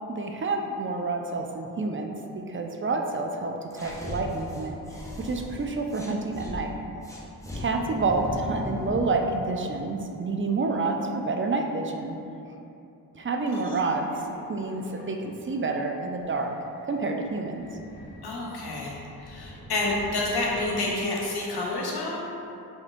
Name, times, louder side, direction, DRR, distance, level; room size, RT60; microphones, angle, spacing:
voice 1, 0.1-6.7 7.6-12.2 13.1-14.1 14.5-16.5 16.9-17.7, right 3 dB, 35° right, 3 dB, 0.4 m, -29 dB
sound 1, 3.7-6.5 7.0-9.1, left 1 dB, 10° left, 0.6 m, -37 dB
Subway metro underground, 13.7-21.2, left 1 dB, 55° left, 1.4 m, -48 dB
voice 2, 18.2-22.2, left 2 dB, 75° left, -3 dB, 0.8 m, -29 dB
5.1 x 2.6 x 2.5 m, 2.7 s
cardioid pair, 50°, 39 cm